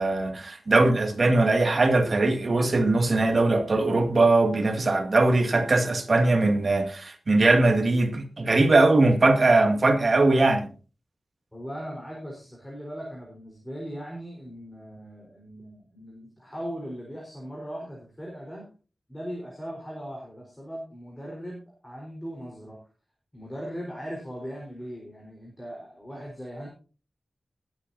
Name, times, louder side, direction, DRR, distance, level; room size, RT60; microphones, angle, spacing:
voice 1, 0.0-10.7, right 2 dB, 45° right, 2.2 m, -21 dB
voice 2, 11.5-18.7 19.1-22.8 23.3-26.7, equal, 10° left, 4.3 m, -39 dB
20.5 x 8.7 x 2.7 m
wide cardioid pair, 115°, 0 cm